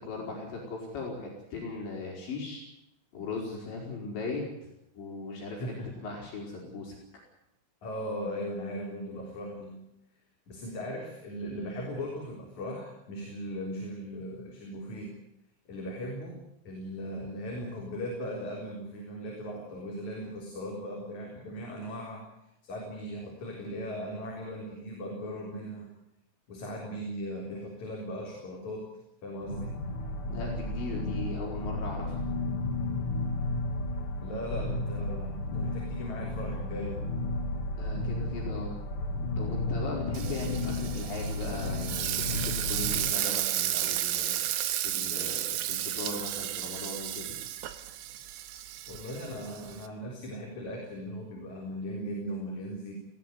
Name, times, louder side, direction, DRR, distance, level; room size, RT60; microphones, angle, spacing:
voice 1, 0.0-2.6 3.1-4.4 5.0-5.8 6.0-7.0 30.3-32.2 37.8-38.8 39.4-44.4 44.8-47.3, left 3 dB, 65° left, -2 dB, 7.0 m, -38 dB
voice 2, 5.5-6.1 7.8-9.8 10.5-15.2 15.7-16.4 16.6-22.2 22.6-25.9 26.5-28.9 29.2-29.8 34.2-37.1 48.9-52.9, equal, 40° left, -1 dB, 4.8 m, -38 dB
sound 1, 29.4-43.1, left 2 dB, 90° left, 1.2 m, -33 dB
Frying (food), 40.1-49.9, right 13 dB, 85° right, 3.8 m, -33 dB
19.5 x 17.0 x 9.5 m, 0.85 s
omnidirectional pair, 5.7 m